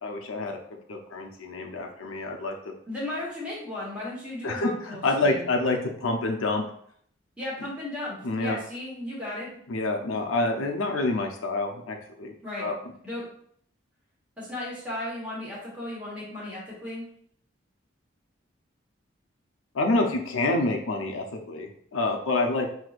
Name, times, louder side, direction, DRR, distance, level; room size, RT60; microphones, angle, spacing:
voice 1, 0.0-0.6 0.9-2.5 4.4-6.6 8.2-8.6 9.7-12.8 19.7-22.7, left 2 dB, 90° left, 2 dB, 0.6 m, -27 dB
voice 2, 2.9-5.5 7.4-9.5 12.4-12.7 13.0-13.2 14.4-17.0, left 1 dB, 5° right, -7 dB, 1.2 m, -35 dB
6.0 x 2.8 x 2.4 m, 0.63 s
head